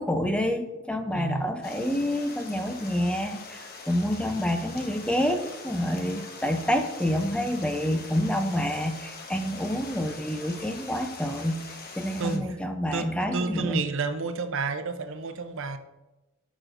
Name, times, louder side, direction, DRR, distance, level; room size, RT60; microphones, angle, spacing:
voice 1, 0.0-11.6 12.0-13.8, equal, 5° left, 0.6 m, -28 dB
voice 2, 1.1-1.5 12.2-12.6 12.9-15.8, right 4 dB, 65° right, 0.7 m, -30 dB
Stream, 1.6-12.4, left 3 dB, 45° left, 1.1 m, -43 dB
14.5 x 6.1 x 2.6 m
head